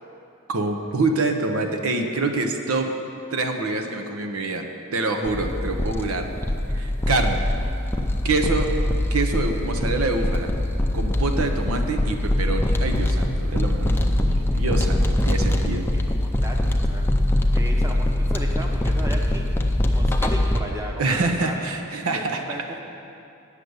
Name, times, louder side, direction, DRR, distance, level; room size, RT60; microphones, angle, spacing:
voice 1, 0.5-3.0 3.3-6.3 6.7-7.5 8.2-8.7 9.1-10.5 10.9-15.9 21.0-22.4, right 3 dB, 80° right, 5 dB, 0.8 m, -26 dB
sound 1, 5.2-20.6, left 1 dB, 10° left, 0.4 m, -23 dB
voice 2, 15.9-16.6 16.8-17.1 17.5-21.7 22.1-22.8, right 1 dB, 15° right, 1 dB, 0.8 m, -36 dB
9.0 x 6.6 x 8.0 m, 2.6 s
head